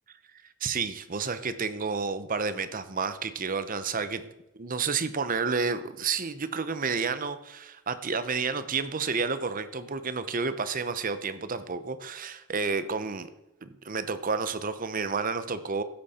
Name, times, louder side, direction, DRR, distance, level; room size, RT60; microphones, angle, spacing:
voice 1, 0.6-4.2 4.5-13.3 13.6-15.8, right 5 dB, 40° right, 12 dB, 0.8 m, -30 dB
14.5 x 8.7 x 4.3 m, 0.92 s
head